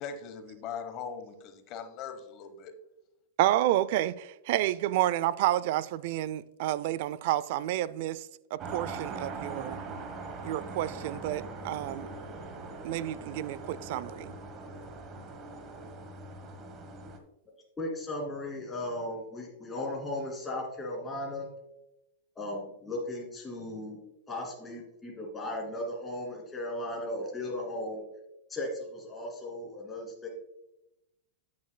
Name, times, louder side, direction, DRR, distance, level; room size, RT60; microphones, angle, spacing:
voice 1, 0.0-2.7, left 6 dB, 40° left, 1.1 m, -40 dB
voice 2, 3.4-9.8 10.4-12.1 12.8-14.3, right 14 dB, 60° right, 0.3 m, -30 dB
sound 1, 8.6-17.2, right 3 dB, 30° right, 1.1 m, -41 dB
voice 3, 17.8-21.5 22.4-24.0 24.3-28.0 28.5-30.3, left 1 dB, 15° left, 2.6 m, -36 dB
9.3 x 8.6 x 2.2 m
supercardioid pair, 135°, 0 cm